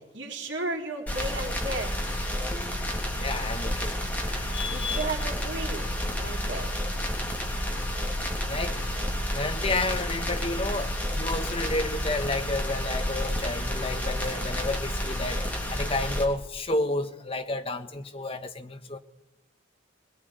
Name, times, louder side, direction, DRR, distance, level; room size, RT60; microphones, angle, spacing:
voice 1, 0.1-1.9 4.5-6.7, right 2 dB, 65° right, 3.9 m, -34 dB
sound 1, 1.1-16.2, equal, 10° left, 3.2 m, -30 dB
voice 2, 2.8-3.9 4.2-5.1 8.5-8.8 9.3-19.0, left 2 dB, 30° left, 1.4 m, -31 dB
22.5 x 20.5 x 9.4 m
head